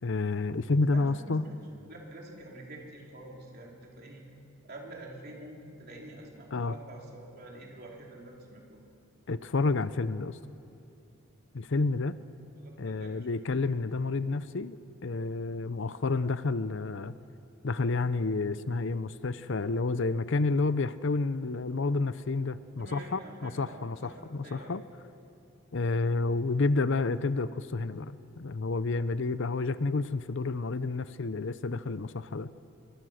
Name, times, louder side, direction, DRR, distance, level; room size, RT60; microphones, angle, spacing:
voice 1, 0.0-1.5 6.5-6.8 9.3-10.4 11.5-12.2 12.8-14.8 15.0-17.1 17.6-24.8 25.7-32.5, left 3 dB, 55° left, 14 dB, 0.6 m, -30 dB
voice 2, 0.9-1.5 1.9-4.2 4.6-8.8 12.6-13.4 22.8-24.7, right 1 dB, 45° right, -1 dB, 3.6 m, -47 dB
26.0 x 23.5 x 6.4 m, 2.7 s
head